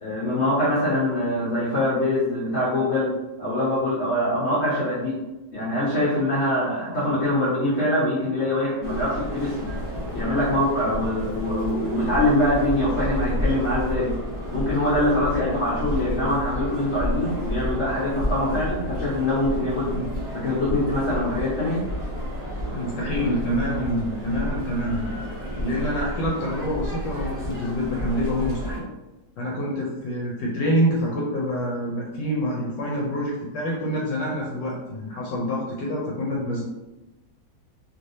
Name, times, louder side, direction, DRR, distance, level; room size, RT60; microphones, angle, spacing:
voice 1, 0.0-3.1 3.4-5.2 5.5-9.7 10.1-14.1 14.5-20.0 20.3-21.8, left 1 dB, 50° left, -7 dB, 0.9 m, -24 dB
sound 1, 8.8-28.8, equal, 40° right, 0.5 m, -31 dB
voice 2, 22.7-25.2 25.6-28.9 29.4-36.6, equal, 75° left, -3 dB, 1.2 m, -27 dB
3.2 x 3.1 x 2.6 m, 1.1 s
omnidirectional pair, 2.1 m